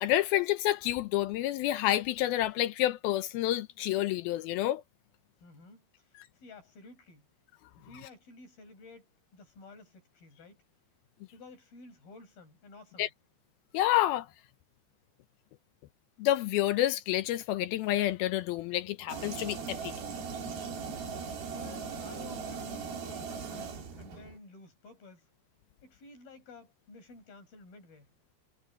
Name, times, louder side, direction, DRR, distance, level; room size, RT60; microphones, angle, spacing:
voice 1, 0.0-4.8 13.0-13.1 13.7-14.3 16.2-19.9, left 14 dB, 80° left, 2.2 m, -29 dB
voice 2, 5.4-7.3 7.8-10.6 11.3-13.1 21.5-25.3 25.8-28.1, left 3 dB, 55° left, 9.3 m, -53 dB
sound 1, 19.1-24.4, right 5 dB, 60° right, 5.0 m, -39 dB
omnidirectional pair, 5.0 m